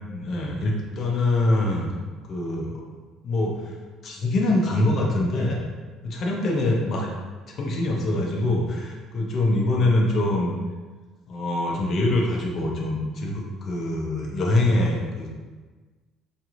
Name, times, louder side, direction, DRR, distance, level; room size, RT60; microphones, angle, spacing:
voice 1, 0.1-1.9 2.3-2.9 3.2-3.7 4.0-5.6 6.0-7.1 7.6-10.5 11.3-15.4, left 2 dB, 35° left, -1 dB, 0.6 m, -24 dB
5.0 x 3.0 x 2.5 m, 1.3 s
cardioid pair, 180°, 0 cm